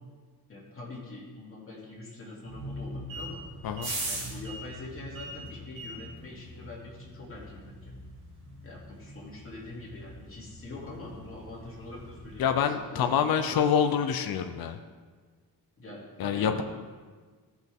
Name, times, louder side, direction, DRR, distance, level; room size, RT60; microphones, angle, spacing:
voice 1, 0.5-3.4 4.0-7.9 8.6-13.6 14.0-14.2 15.8-16.6, left 2 dB, 35° left, -5 dB, 2.8 m, -44 dB
sound 1, 2.4-12.5, right 1 dB, 55° right, 2.8 m, -41 dB
voice 2, 12.4-14.8 16.2-16.6, left 8 dB, 60° left, 8 dB, 0.6 m, -26 dB
15.0 x 6.0 x 3.6 m, 1.5 s
wide cardioid pair, 145°, 40 cm